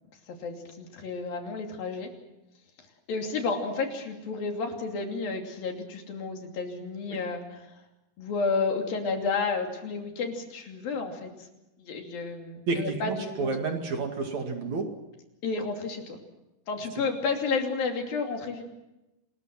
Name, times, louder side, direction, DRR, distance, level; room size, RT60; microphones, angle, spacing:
voice 1, 0.3-2.1 3.1-7.6 8.2-11.5 11.8-13.5 15.4-16.2 16.7-18.6, left 4 dB, 65° left, 3 dB, 4.5 m, -31 dB
voice 2, 12.7-14.9, right 4 dB, 50° right, 4 dB, 3.3 m, -30 dB
27.5 x 21.0 x 6.0 m, 0.94 s
omnidirectional pair, 4.4 m